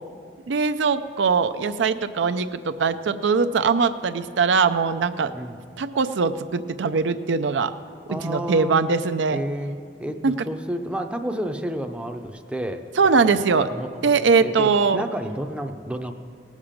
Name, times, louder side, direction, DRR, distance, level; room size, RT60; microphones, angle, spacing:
voice 1, 0.5-5.3 5.8-7.7 8.2-9.4 10.2-10.4 13.0-13.7 14.0-15.0, right 5 dB, 90° right, 10 dB, 0.5 m, -21 dB
voice 2, 8.1-8.8 9.3-9.7 10.0-12.8 13.6-16.1, equal, 5° right, 5 dB, 0.5 m, -30 dB
18.5 x 7.4 x 5.1 m, 2.1 s
head